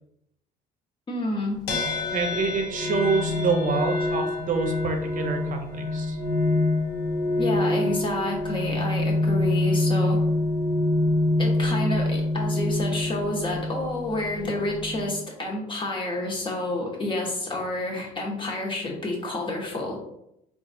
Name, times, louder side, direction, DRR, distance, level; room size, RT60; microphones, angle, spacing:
voice 1, 1.1-1.6 7.4-10.2 11.4-20.0, left 2 dB, 30° left, -1 dB, 1.1 m, -29 dB
sound 1, 1.7-15.2, left 2 dB, 80° left, 1.1 m, -26 dB
voice 2, 2.1-6.2, right 4 dB, 50° right, 4 dB, 0.6 m, -27 dB
3.7 x 2.4 x 4.1 m, 0.80 s
cardioid pair, 110°, 17 cm